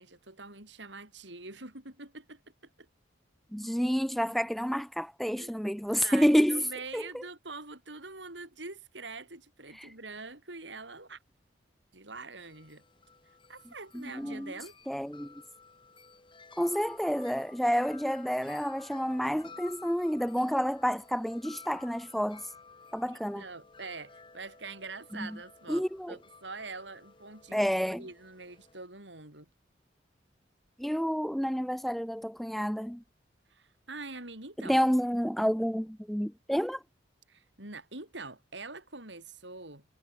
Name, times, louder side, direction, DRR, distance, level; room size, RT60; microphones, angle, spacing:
voice 1, 0.0-2.4 2.8-2.9 5.4-5.5 5.9-11.2 11.9-12.8 13.5-14.7 23.1-27.6 28.0-29.5 33.5-34.8 37.3-39.9, right 3 dB, 75° right, 8.0 m, -44 dB
voice 2, 3.5-6.6 6.9-7.0 13.9-14.5 14.9-15.3 16.6-22.4 22.9-23.4 25.1-25.3 25.7-26.1 27.5-28.0 30.8-33.0 34.6-36.8, equal, ahead, 0.5 m, -29 dB
Wind chime, 12.4-28.9, left 4 dB, 25° left, 3.7 m, -54 dB
head